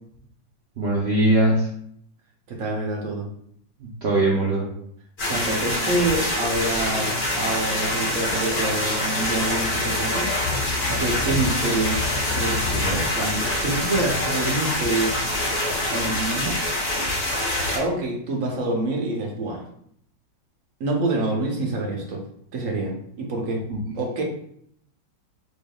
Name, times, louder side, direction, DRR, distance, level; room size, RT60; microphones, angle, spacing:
voice 1, 0.8-1.7 3.8-4.7 23.7-23.8, right 1 dB, 75° right, -4 dB, 0.6 m, -21 dB
voice 2, 2.5-3.3 5.3-10.3 10.9-12.0 12.3-15.1 15.9-16.6 17.7-19.6 20.8-22.2 22.5-23.6 23.9-24.2, right 2 dB, 55° right, 0 dB, 1.0 m, -26 dB
sound 1, 5.2-17.8, left 1 dB, 40° left, 1.3 m, -25 dB
4.4 x 3.5 x 2.3 m, 0.68 s
omnidirectional pair, 2.0 m